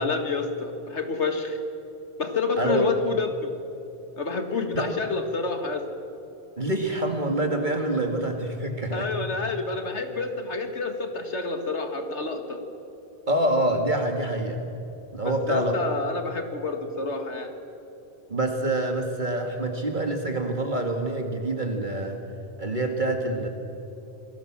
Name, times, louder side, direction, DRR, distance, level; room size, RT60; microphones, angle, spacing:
voice 1, 0.0-1.6 2.2-3.5 4.2-5.9 8.9-12.6 15.2-17.5, left 4 dB, 90° left, 6 dB, 2.2 m, -28 dB
voice 2, 6.6-9.1 13.3-14.6 15.1-15.7 18.3-22.2 22.6-23.5, right 1 dB, 45° right, 3 dB, 2.1 m, -26 dB
27.0 x 18.0 x 7.4 m, 2.9 s
omnidirectional pair, 1.1 m